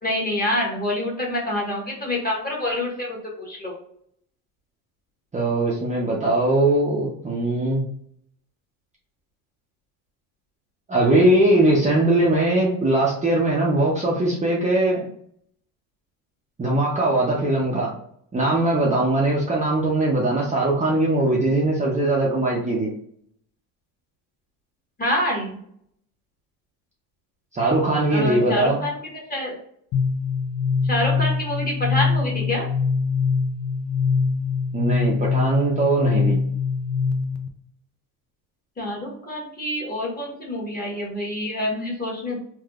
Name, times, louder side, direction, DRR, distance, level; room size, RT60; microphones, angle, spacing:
voice 1, 0.0-3.7 25.0-25.6 28.1-28.9 29.3-29.5 30.8-32.7 38.8-42.4, left 1 dB, 20° left, -2 dB, 1.4 m, -26 dB
voice 2, 5.3-7.8 10.9-15.0 16.6-17.9 18.3-22.9 27.5-28.8 34.7-36.4, right 2 dB, 15° right, -4 dB, 0.6 m, -20 dB
sound 1, 29.9-37.5, left 5 dB, 40° left, 0.5 m, -23 dB
3.4 x 2.5 x 2.4 m, 0.67 s
supercardioid pair, 105°, 42 cm